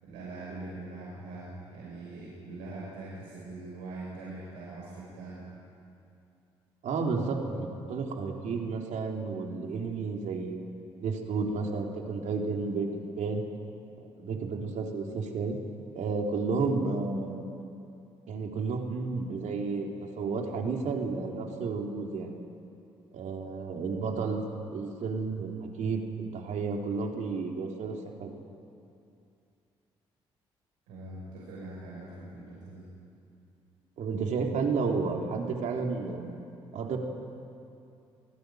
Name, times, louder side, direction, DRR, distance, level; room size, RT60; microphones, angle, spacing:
voice 1, 0.0-5.5 30.9-32.9, right 2 dB, 80° right, -6 dB, 6.2 m, -42 dB
voice 2, 6.8-10.6 11.0-13.4 14.2-15.6 15.9-17.4 18.3-19.9 20.2-22.3 23.1-24.4 24.7-28.3 34.0-36.3 36.7-37.0, right 4 dB, 65° right, 2 dB, 3.6 m, -32 dB
27.0 x 19.0 x 9.3 m, 2.6 s
hypercardioid pair, 45°, 14 cm